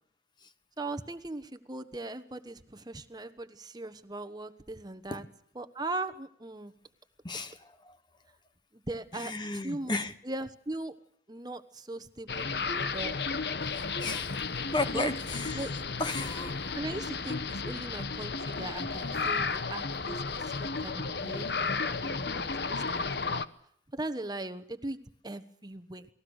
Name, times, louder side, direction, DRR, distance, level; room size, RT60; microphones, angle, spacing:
voice 1, 0.8-5.3 5.5-6.7 8.7-9.9 10.2-10.9 11.3-13.2 14.9-15.1 15.5-15.7 16.7-23.4 23.9-26.1, right 2 dB, 25° right, 11 dB, 1.2 m, -39 dB
voice 2, 7.2-8.0 9.1-10.1 13.8-14.4 14.7-15.7 16.0-16.8, left 2 dB, 25° left, 10 dB, 1.3 m, -34 dB
sound 1, 12.3-23.4, left 4 dB, 70° left, 1.1 m, -33 dB
29.0 x 20.0 x 6.5 m, 0.66 s
head